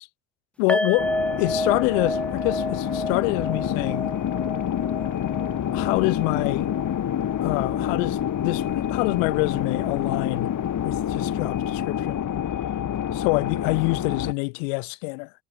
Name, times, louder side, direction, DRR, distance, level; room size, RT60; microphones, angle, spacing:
voice 1, 0.6-4.1 5.7-6.7 7.4-10.5 10.8-12.2 13.1-15.3, left 34 dB, 80° left, 3.3 m, -26 dB
sound 1, 0.7-7.9 8.2-8.3 8.7-8.8, left 1 dB, 5° left, 2.3 m, -31 dB
sound 2, 1.0-14.3, left 10 dB, 55° left, 5.7 m, -27 dB
hypercardioid pair, 60°, 38 cm